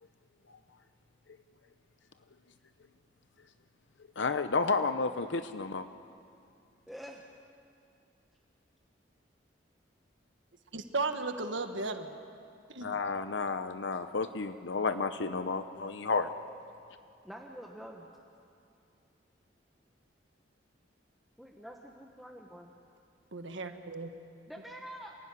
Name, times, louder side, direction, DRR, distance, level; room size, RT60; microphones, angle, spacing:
voice 1, 4.2-5.8 12.8-16.3, left 4 dB, 80° left, 10 dB, 0.8 m, -31 dB
voice 2, 6.9-7.2 17.2-18.1 21.4-22.7 24.5-25.2, equal, ahead, -1 dB, 1.2 m, -46 dB
voice 3, 10.7-12.1 12.7-12.9 23.3-24.1, right 3 dB, 85° right, 7 dB, 1.5 m, -35 dB
28.0 x 16.0 x 9.8 m, 2.5 s
head